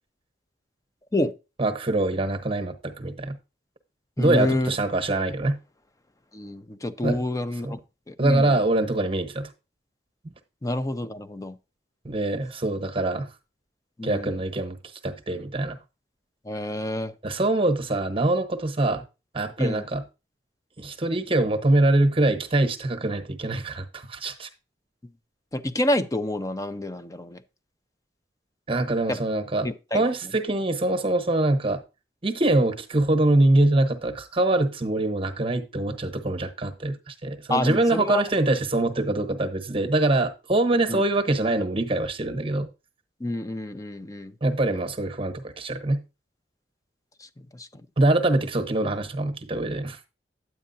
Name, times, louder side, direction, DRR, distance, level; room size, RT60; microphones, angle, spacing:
voice 1, 1.6-3.4 4.2-5.6 7.0-7.2 7.6-7.7 8.2-9.5 12.0-13.3 14.0-14.8 15.0-15.8 17.2-19.0 19.3-20.0 20.8-24.5 28.7-29.7 29.9-31.8 32.2-42.7 44.4-46.0 48.0-50.0, right 2 dB, 30° right, 1.1 m, -24 dB
voice 2, 4.2-4.7 6.3-7.8 8.1-8.6 10.6-11.6 14.0-14.4 16.4-17.1 19.6-19.8 25.5-27.4 29.1-29.2 29.6-30.0 37.5-38.2 40.9-41.0 43.2-44.3 47.2-47.9, left 1 dB, 20° left, 0.6 m, -28 dB
9.5 x 8.6 x 2.7 m
head